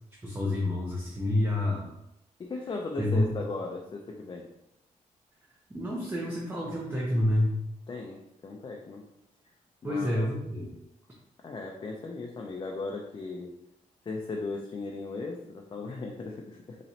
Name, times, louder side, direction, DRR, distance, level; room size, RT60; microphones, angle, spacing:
voice 1, 0.2-1.9 3.0-3.3 5.7-7.6 9.8-10.7, left 1 dB, 15° right, -3 dB, 0.7 m, -28 dB
voice 2, 2.4-4.5 7.9-9.0 9.8-10.2 11.4-13.5 14.0-16.8, left 3 dB, 35° left, 0 dB, 0.5 m, -37 dB
4.1 x 3.0 x 2.8 m, 0.84 s
cardioid pair, 105°, 14 cm